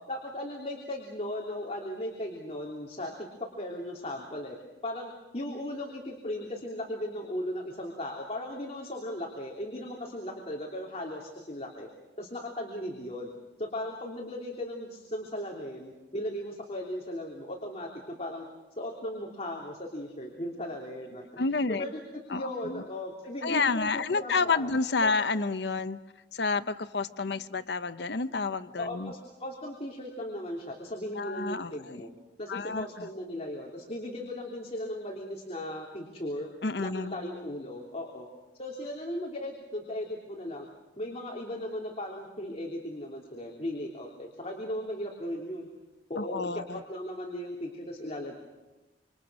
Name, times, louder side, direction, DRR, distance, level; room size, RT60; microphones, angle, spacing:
voice 1, 0.1-3.3 3.5-4.6 4.8-11.9 12.2-13.3 13.6-18.4 18.8-22.0 22.3-24.7 25.0-25.1 28.8-32.1 32.4-36.5 36.8-38.3 38.6-40.7 41.0-45.7 46.1-48.3, left 1 dB, 35° left, -1 dB, 3.3 m, -37 dB
voice 2, 21.4-21.8 22.3-22.8 23.4-26.0 26.3-29.1 31.1-32.0 32.5-33.1 36.6-37.2 46.2-46.8, left 4 dB, 65° left, 12 dB, 0.8 m, -30 dB
27.5 x 26.0 x 6.3 m, 1.1 s
head